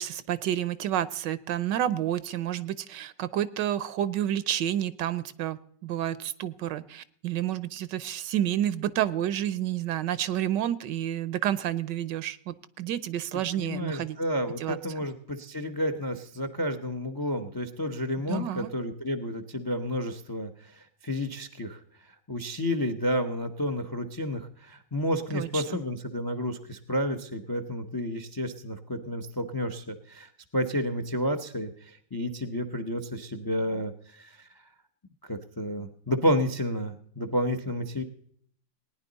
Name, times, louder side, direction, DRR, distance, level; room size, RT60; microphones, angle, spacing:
voice 1, 0.0-14.2 14.6-14.8 18.2-18.7 25.3-25.6, right 11 dB, 80° right, 16 dB, 1.3 m, -30 dB
voice 2, 13.6-21.8 22.3-34.5 35.3-38.0, left 1 dB, 35° left, 9 dB, 0.3 m, -31 dB
19.0 x 10.0 x 4.0 m, 0.63 s
omnidirectional pair, 1.9 m